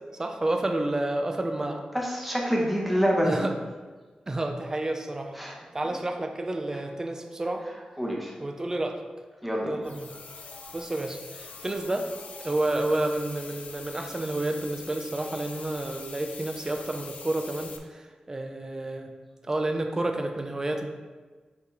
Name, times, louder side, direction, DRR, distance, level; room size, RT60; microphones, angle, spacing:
voice 1, 0.2-1.8 3.2-3.5 4.3-5.4 5.7-7.6 8.4-9.0 9.6-10.1 10.7-12.1 12.4-19.1 19.5-20.9, right 2 dB, 25° right, 4 dB, 0.6 m, -30 dB
voice 2, 1.9-3.4 5.4-5.6 8.0-8.3 9.4-9.9 10.4-10.8, equal, ahead, -2 dB, 1.1 m, -27 dB
sound 1, 9.8-17.8, left 5 dB, 90° left, 0.6 m, -44 dB
5.8 x 4.7 x 3.9 m, 1.4 s
wide cardioid pair, 120°, 2 cm